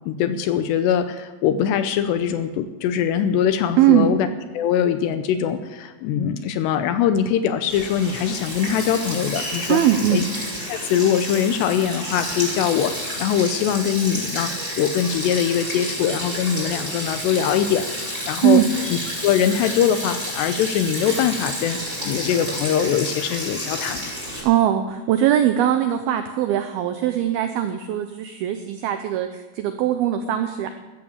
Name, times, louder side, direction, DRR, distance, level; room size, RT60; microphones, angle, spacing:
voice 1, 0.1-4.3 4.5-9.8 10.1-10.2 10.7-18.6 18.9-24.1, left 9 dB, 80° left, 10 dB, 2.7 m, -22 dB
voice 2, 3.8-4.2 9.7-10.2 18.4-18.7 24.4-30.7, right 11 dB, 90° right, 8 dB, 2.1 m, -20 dB
Sink (filling or washing), 7.7-24.4, equal, 15° right, 5.8 m, -30 dB
sound 1, 14.5-15.8 16.5-16.9 17.8-18.3 18.7-19.2 19.8-20.4, right 5 dB, 65° right, 3.6 m, -44 dB
14.0 x 13.5 x 7.2 m, 1.2 s
omnidirectional pair, 5.4 m